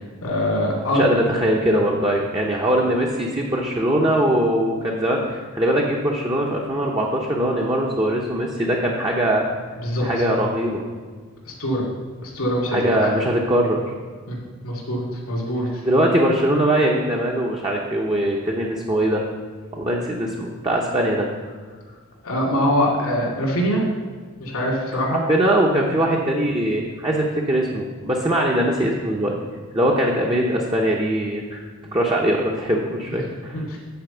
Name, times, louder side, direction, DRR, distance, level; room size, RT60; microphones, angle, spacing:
voice 1, 0.2-1.0 9.8-10.3 11.5-11.8 12.2-13.1 14.3-14.4 14.6-15.7 22.2-23.8 24.4-25.2 33.1-33.2 33.5-33.8, equal, 85° left, -3 dB, 2.4 m, -23 dB
voice 2, 0.9-9.5 10.0-10.8 12.7-13.8 15.8-19.2 19.7-21.3 25.3-29.3 29.7-31.6 31.9-33.6, right 1 dB, 20° right, -2 dB, 0.8 m, -21 dB
9.4 x 4.7 x 6.9 m, 1.5 s
head